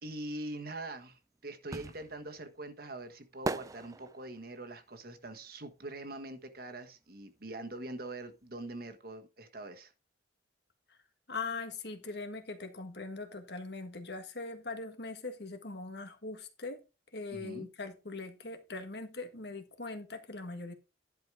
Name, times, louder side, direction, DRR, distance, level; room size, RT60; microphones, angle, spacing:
voice 1, 0.0-9.9 17.3-17.7, right 2 dB, 50° right, 1.4 m, -43 dB
sound 1, 0.8-6.7 7.0-8.6 8.8-8.9, right 2 dB, 20° right, 0.4 m, -41 dB
voice 2, 11.3-16.8 17.1-20.7, left 3 dB, 60° left, 1.6 m, -41 dB
11.0 x 4.9 x 4.8 m
head